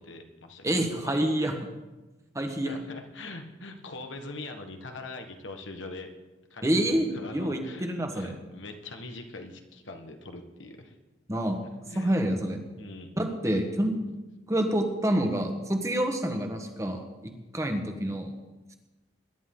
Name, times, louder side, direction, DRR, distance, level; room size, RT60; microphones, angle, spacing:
voice 1, 0.0-0.7 0.9-1.3 2.6-6.1 6.5-11.0 11.9-12.2 12.8-13.1, left 2 dB, 85° left, 5 dB, 1.5 m, -42 dB
voice 2, 0.6-1.5 2.3-2.7 6.6-8.3 11.3-11.6 11.9-12.6 13.2-14.0 14.5-17.0 17.5-18.3, right 1 dB, 15° right, 4 dB, 1.4 m, -27 dB
22.0 x 11.0 x 3.8 m, 1.1 s
head